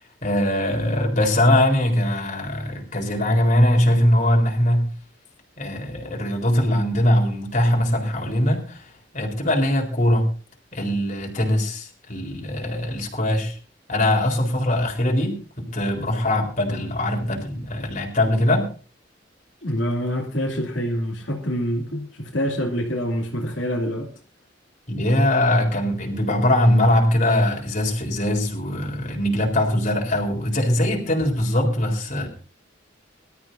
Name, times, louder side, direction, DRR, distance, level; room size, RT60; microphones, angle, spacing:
voice 1, 0.2-4.8 5.6-10.3 10.7-13.6 13.9-18.7 24.9-32.3, left 1 dB, 45° left, 3.9 m, -21 dB
voice 2, 19.6-24.1, equal, 85° left, 2.6 m, -26 dB
23.5 x 13.0 x 2.6 m
head